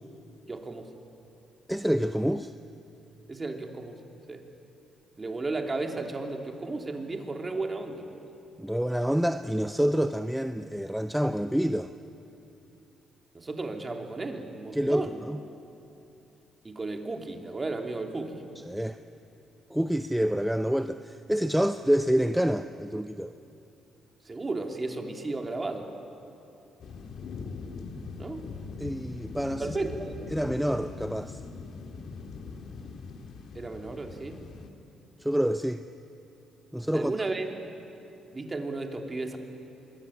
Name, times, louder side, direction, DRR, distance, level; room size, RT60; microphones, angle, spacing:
voice 1, 0.5-0.9 3.3-4.0 4.3-4.5 5.2-8.3 13.3-15.2 16.6-18.4 24.2-25.9 28.2-28.5 29.6-30.3 33.5-34.4 36.9-37.5 38.3-39.4, right 3 dB, 25° right, 3 dB, 3.1 m, -34 dB
voice 2, 1.7-2.5 8.6-11.9 14.7-15.4 18.7-19.0 19.7-23.4 28.8-29.7 30.3-31.4 35.2-35.8 36.7-37.1, equal, 5° right, 9 dB, 0.7 m, -27 dB
sound 1, 26.8-34.7, left 4 dB, 60° left, 2.1 m, -41 dB
25.5 x 22.0 x 9.8 m, 2.8 s
cardioid pair, 90°, 0 cm